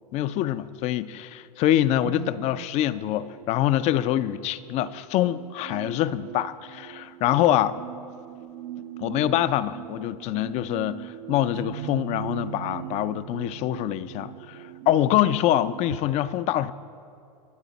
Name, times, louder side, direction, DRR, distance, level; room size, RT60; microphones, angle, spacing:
voice 1, 0.1-7.8 9.0-16.7, left 12 dB, 35° left, 0.5 m, -25 dB
sound 1, 2.0-16.0, right 13 dB, 50° right, 0.5 m, -40 dB
25.5 x 8.9 x 4.1 m
supercardioid pair, 135°, 21 cm